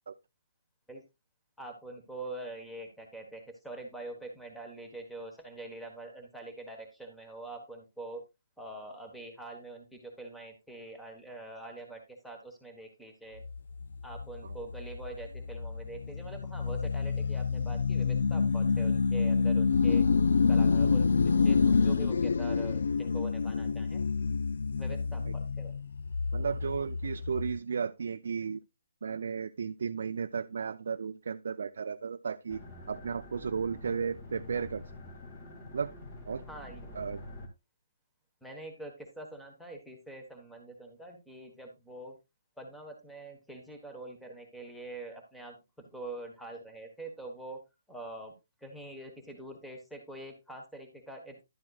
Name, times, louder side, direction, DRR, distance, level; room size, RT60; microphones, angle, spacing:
voice 1, 1.6-8.2 8.6-13.4 14.0-20.0 20.5-24.0 24.8-25.7 36.5-37.2 38.4-42.2 42.6-45.6 45.9-47.6 47.9-48.3 48.6-51.4, right 2 dB, ahead, 1.2 m, -45 dB
sound 1, 13.4-27.6, left 5 dB, 70° left, 0.4 m, -28 dB
voice 2, 26.3-28.6 29.0-32.6 32.9-34.8 35.7-35.9 36.3-36.4 36.9-37.2, right 6 dB, 65° right, 0.4 m, -34 dB
sound 2, 32.5-37.5, left 2 dB, 30° left, 2.1 m, -47 dB
11.0 x 7.6 x 2.3 m
hypercardioid pair, 160°, 0 cm